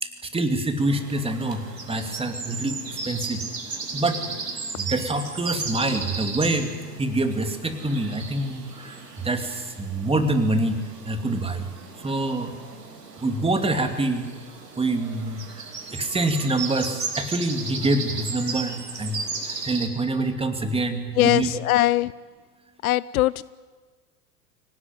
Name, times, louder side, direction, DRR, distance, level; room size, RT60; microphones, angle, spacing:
voice 1, 0.0-1.6 1.9-3.4 3.7-4.3 4.7-8.9 9.2-11.7 12.0-12.5 13.2-14.2 14.8-15.6 15.9-19.2 19.5-21.5, right 2 dB, 10° right, 6 dB, 2.7 m, -26 dB
sound 1, 0.8-19.9, right 4 dB, 85° right, 2.9 m, -35 dB
voice 2, 21.1-22.1 22.8-23.4, left 16 dB, 65° left, 21 dB, 0.6 m, -21 dB
24.5 x 18.0 x 9.4 m, 1.4 s
figure-of-eight pair, 85°, 47 cm